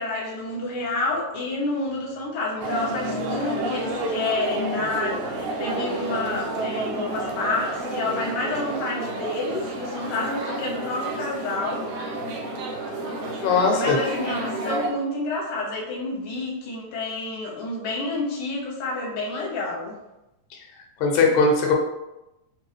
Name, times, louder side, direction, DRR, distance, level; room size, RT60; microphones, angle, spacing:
voice 1, 0.0-11.9 13.7-20.0, left 2 dB, 65° left, -3 dB, 1.4 m, -29 dB
sound 1, 2.6-14.9, right 2 dB, 80° right, 1.4 m, -30 dB
voice 2, 13.4-14.0 20.7-21.7, left 4 dB, 85° left, 1 dB, 2.1 m, -20 dB
4.5 x 2.6 x 3.2 m, 0.95 s
omnidirectional pair, 3.4 m